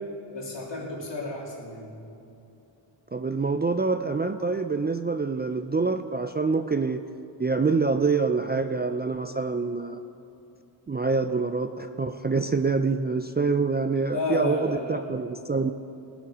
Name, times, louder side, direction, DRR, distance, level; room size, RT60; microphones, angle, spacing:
voice 1, 0.3-1.9 13.9-15.0, left 2 dB, 60° left, -2 dB, 2.9 m, -32 dB
voice 2, 3.1-7.0 7.4-10.0 10.9-15.7, right 4 dB, 20° right, 8 dB, 0.4 m, -26 dB
17.5 x 7.3 x 6.1 m, 2.9 s
wide cardioid pair, 85°, 48 cm